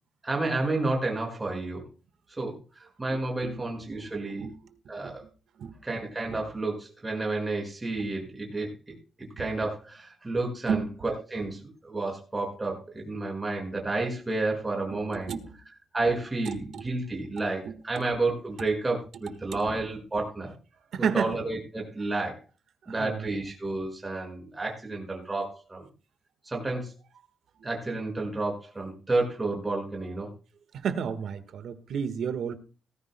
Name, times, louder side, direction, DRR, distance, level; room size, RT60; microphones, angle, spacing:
voice 1, 0.2-1.8 2.4-2.6 3.0-4.5 4.9-5.2 5.8-8.7 9.2-15.3 15.9-20.5 21.0-22.4 22.9-25.9 26.4-26.9 27.6-30.3, right 2 dB, 15° right, 5.7 m, -30 dB
voice 2, 3.1-3.6 4.4-4.6 5.0-5.1 5.6-5.8 6.3-6.4 9.2-9.5 10.7-10.8 14.9-15.0 15.3-15.5 16.5-16.9 17.6-18.0 20.9-21.3 23.0-23.3 30.8-32.6, right 7 dB, 70° right, 1.5 m, -32 dB
18.5 x 14.5 x 2.2 m
wide cardioid pair, 155°, 0 cm